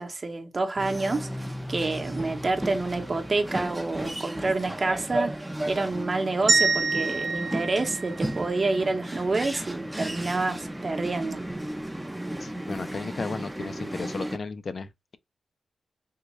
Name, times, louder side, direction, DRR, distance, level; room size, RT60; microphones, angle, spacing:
voice 1, 0.0-5.3 5.7-11.4, right 3 dB, 45° right, 0.8 m, -28 dB
sound 1, 0.8-14.4, right 1 dB, 10° right, 0.5 m, -34 dB
sound 2, 6.5-8.7, right 4 dB, 80° right, 0.8 m, -26 dB
voice 2, 12.4-15.2, left 4 dB, 60° left, 0.4 m, -35 dB
3.6 x 2.2 x 3.0 m
cardioid pair, 65°, 0 cm